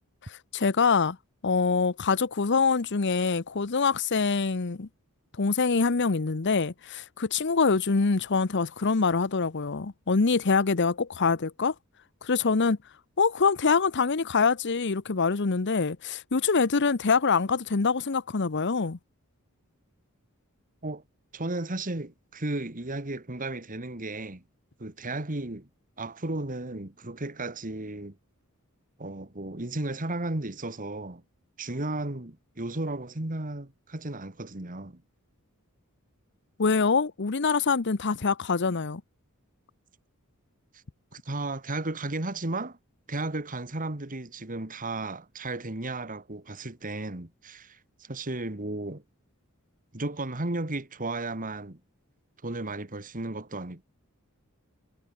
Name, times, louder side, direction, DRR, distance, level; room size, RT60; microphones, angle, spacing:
voice 1, 0.2-1.2 1.4-4.9 5.4-11.7 12.2-12.8 13.2-19.0 36.6-39.0, left 4 dB, 55° left, 0.8 m, -25 dB
voice 2, 21.3-24.4 24.8-25.7 26.0-28.2 29.0-31.2 31.6-35.0 41.1-42.8 43.1-49.0 49.9-51.8 52.4-53.8, right 2 dB, 40° right, 2.1 m, -34 dB
head